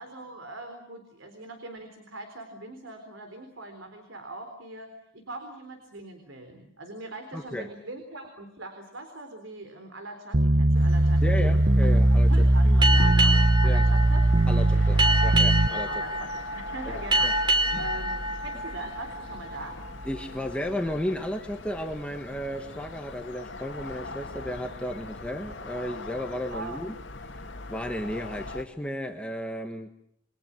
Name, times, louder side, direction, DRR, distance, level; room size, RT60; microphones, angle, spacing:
voice 1, 0.0-11.4 11.8-11.9 12.3-14.2 14.6-15.2 15.8-19.8 26.5-26.8, right 2 dB, 85° right, 7 dB, 3.9 m, -41 dB
voice 2, 7.3-7.7 11.2-12.8 13.6-13.8 14.5-15.9 16.8-17.3 17.7-17.9 20.0-26.9 27.3-27.4 27.7-29.9, equal, 5° left, 4 dB, 1.4 m, -34 dB
sound 1, 10.3-15.7, right 1 dB, 45° right, 1.0 m, -20 dB
sound 2, 10.7-28.6, left 2 dB, 65° left, 2.6 m, -41 dB
Boat Water vehicle, 12.8-19.9, right 1 dB, 25° right, 3.0 m, -27 dB
29.0 x 23.0 x 7.6 m, 0.70 s
head